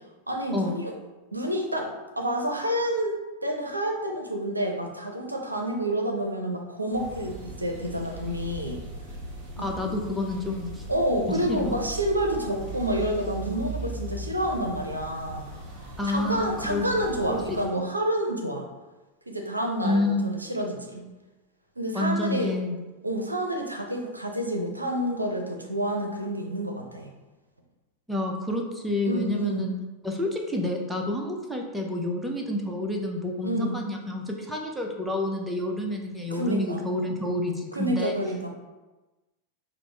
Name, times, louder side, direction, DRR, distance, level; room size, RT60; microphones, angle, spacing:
voice 1, 0.3-0.9 1.3-8.8 9.6-9.7 10.9-15.5 16.0-18.7 19.3-21.1 21.8-22.6 23.0-27.1 29.1-29.7 33.4-33.8 36.3-36.8 37.7-38.5, right 1 dB, 85° right, 2 dB, 0.5 m, -29 dB
sound 1, 6.9-17.7, right 2 dB, 40° right, 1.0 m, -39 dB
voice 2, 9.6-10.8 11.3-11.7 16.0-16.8 17.3-17.6 19.8-20.3 21.9-22.8 28.1-29.8 30.0-38.1, left 2 dB, 5° right, 0 dB, 0.5 m, -29 dB
5.0 x 2.0 x 3.2 m, 1.1 s
figure-of-eight pair, 90°, 0 cm